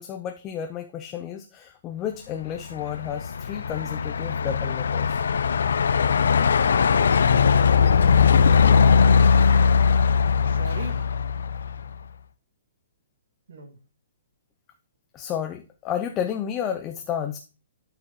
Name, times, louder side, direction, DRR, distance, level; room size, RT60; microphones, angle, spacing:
voice 1, 0.0-5.2 15.1-17.4, left 9 dB, 15° left, 5 dB, 0.5 m, -31 dB
Truck, 2.5-11.9, left 6 dB, 80° left, 0.5 m, -20 dB
voice 2, 10.4-11.0 13.5-13.8, right 3 dB, 70° right, 2 dB, 2.0 m, -40 dB
12.0 x 4.9 x 3.0 m, 0.33 s
hypercardioid pair, 165°, 0 cm